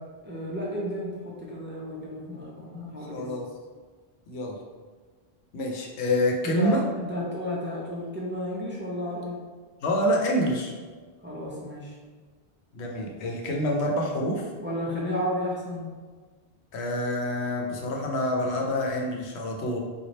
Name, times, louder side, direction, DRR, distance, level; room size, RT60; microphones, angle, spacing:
voice 1, 0.2-3.3 6.4-9.4 11.2-12.0 14.6-15.9, left 1 dB, 15° right, -5 dB, 0.4 m, -32 dB
voice 2, 3.1-3.5 4.3-4.6 5.5-6.8 9.8-10.7 12.7-14.5 16.7-19.8, equal, 90° left, 1 dB, 0.9 m, -27 dB
3.2 x 2.4 x 3.9 m, 1.5 s
omnidirectional pair, 1.1 m